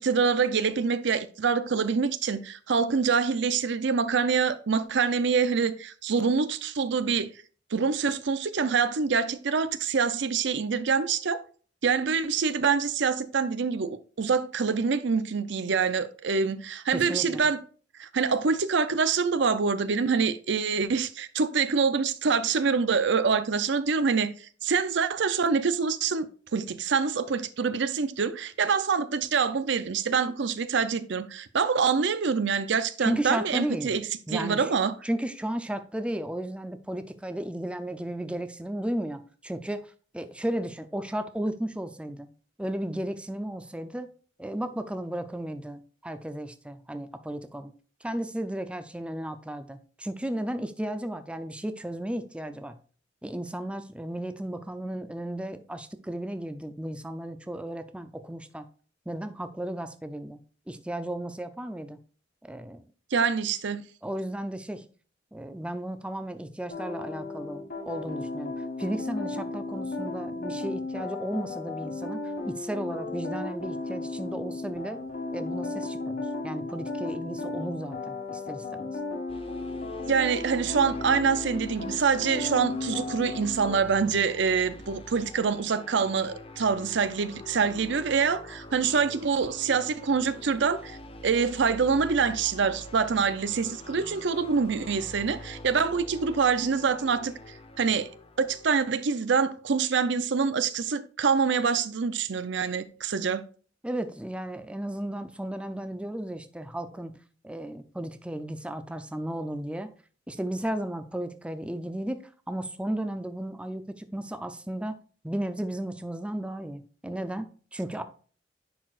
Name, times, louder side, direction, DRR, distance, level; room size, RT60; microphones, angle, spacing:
voice 1, 0.0-7.3 7.7-11.4 11.8-17.6 18.0-34.0 34.3-34.9 63.1-63.8 80.1-91.0 91.2-97.3 97.8-98.1 98.4-103.4, right 5 dB, 70° right, 0.6 m, -25 dB
voice 2, 16.9-17.4 33.0-34.0 34.3-34.7 35.0-42.3 42.6-44.1 44.4-47.7 48.0-52.8 53.2-58.7 59.1-62.0 62.4-62.8 64.0-64.9 65.3-75.0 75.3-78.9 103.8-107.2 107.4-109.9 110.3-112.2 112.5-115.0 115.2-118.0, right 1 dB, 5° right, 0.5 m, -34 dB
sound 1, 66.7-83.8, left 3 dB, 55° left, 1.8 m, -35 dB
sound 2, 79.3-98.8, left 1 dB, 30° left, 0.9 m, -45 dB
10.0 x 4.6 x 2.4 m
head